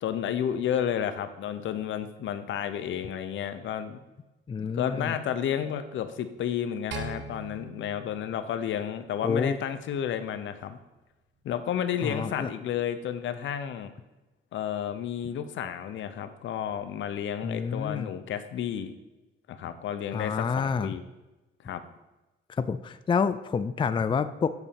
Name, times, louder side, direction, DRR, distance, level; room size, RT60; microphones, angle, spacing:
voice 1, 0.0-4.0 4.6-10.8 11.4-13.9 14.5-18.9 19.5-21.0 21.6-21.8, left 9 dB, 70° left, 11 dB, 0.8 m, -31 dB
voice 2, 4.5-5.1 9.2-9.6 12.0-12.5 17.4-18.1 20.1-20.9 22.5-24.5, left 6 dB, 25° left, 12 dB, 0.4 m, -28 dB
sound 1, 6.9-9.3, right 3 dB, 65° right, 1.2 m, -41 dB
8.1 x 4.2 x 7.1 m, 1.0 s
cardioid pair, 90°, 20 cm